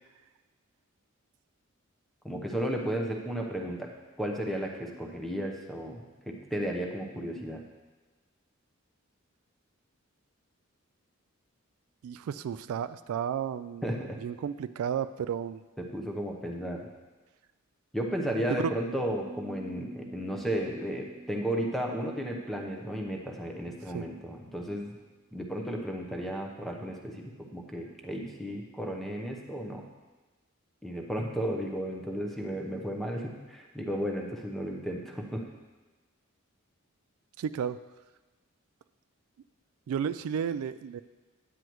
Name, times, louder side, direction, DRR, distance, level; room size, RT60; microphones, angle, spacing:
voice 1, 2.2-3.9 4.2-7.6 13.8-14.2 15.8-16.8 17.9-24.9 25.3-29.8 30.8-35.4, equal, ahead, 0 dB, 0.8 m, -34 dB
voice 2, 12.0-13.9 14.2-15.6 18.6-18.7 23.9-24.0 37.4-37.8 39.9-41.0, right 8 dB, 85° right, 13 dB, 0.3 m, -32 dB
Piano, 19.2-24.8, right 1 dB, 40° right, 1.0 m, -49 dB
9.8 x 9.2 x 3.1 m, 1.2 s
head